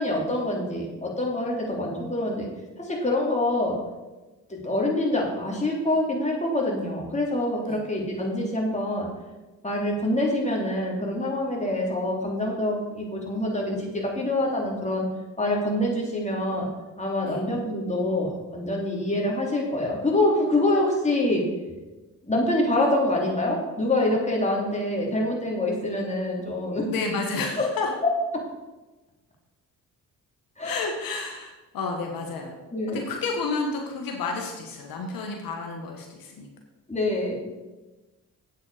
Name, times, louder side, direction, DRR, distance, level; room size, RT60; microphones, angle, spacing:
voice 1, 0.0-2.5 2.8-3.8 4.5-9.1 9.6-15.1 15.4-16.7 17.0-21.4 22.2-27.0 27.6-27.7 30.6-30.8 32.7-33.0 36.9-37.3, left 1 dB, 20° left, -2 dB, 3.5 m, -25 dB
voice 2, 26.9-27.9 30.6-32.5 32.9-36.5, left 4 dB, 80° left, 2 dB, 1.5 m, -31 dB
8.4 x 8.4 x 5.0 m, 1.1 s
supercardioid pair, 60°, 34 cm